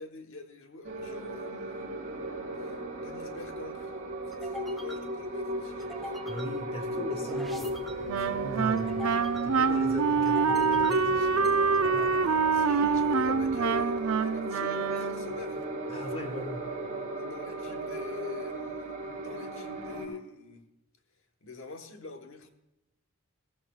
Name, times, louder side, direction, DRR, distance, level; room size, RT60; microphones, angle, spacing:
voice 1, 0.0-1.8 2.6-3.9 4.3-6.1 12.1-15.6 16.0-16.1 17.2-20.6 21.4-22.5, left 3 dB, 65° left, 1.2 m, -44 dB
sound 1, 0.8-20.1, right 1 dB, 40° right, 4.5 m, -36 dB
sound 2, 2.2-14.7, equal, ahead, 1.2 m, -47 dB
voice 2, 6.2-9.0 9.4-11.5 11.9-12.3 15.9-16.7, left 1 dB, 30° left, 1.3 m, -39 dB
Wind instrument woodwind instrument, 8.1-15.4, right 5 dB, 85° right, 0.5 m, -26 dB
18.5 x 15.0 x 2.4 m
head